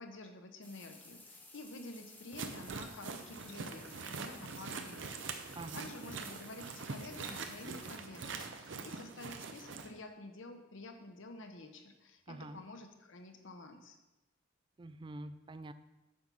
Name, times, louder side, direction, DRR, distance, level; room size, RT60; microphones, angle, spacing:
voice 1, 0.0-5.2 5.4-14.0, left 2 dB, 70° left, 5 dB, 0.9 m, -50 dB
sound 1, 0.6-8.0, left 2 dB, 10° left, 0.7 m, -56 dB
sound 2, 2.3-9.9, right 4 dB, 65° right, 0.7 m, -44 dB
voice 2, 5.6-5.9 12.3-12.7 14.8-15.7, right 2 dB, 25° right, 12 dB, 0.3 m, -46 dB
8.5 x 6.0 x 4.1 m, 1.0 s
head